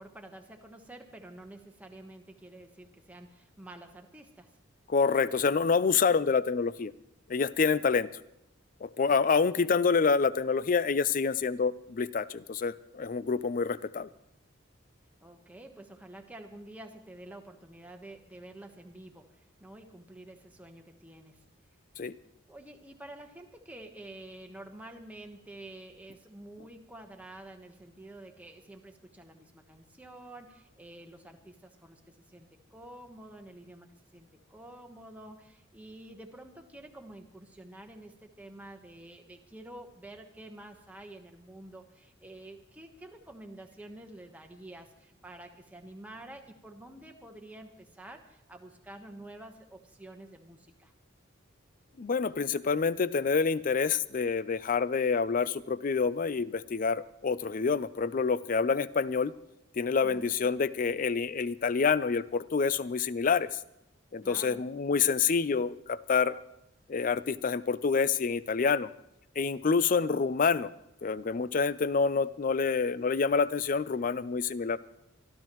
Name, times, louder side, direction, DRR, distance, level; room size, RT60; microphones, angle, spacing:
voice 1, 0.0-4.6 9.4-9.8 15.2-21.4 22.5-50.9 60.0-60.3 64.2-64.6, right 1 dB, 10° right, 3 dB, 1.1 m, -49 dB
voice 2, 4.9-6.9 7.3-8.1 8.8-14.1 22.0-22.2 52.0-59.3 59.8-63.5 64.1-66.3 66.9-68.9 69.4-70.7 71.0-74.8, left 5 dB, 45° left, 17 dB, 0.4 m, -27 dB
26.0 x 12.0 x 3.1 m, 0.84 s
head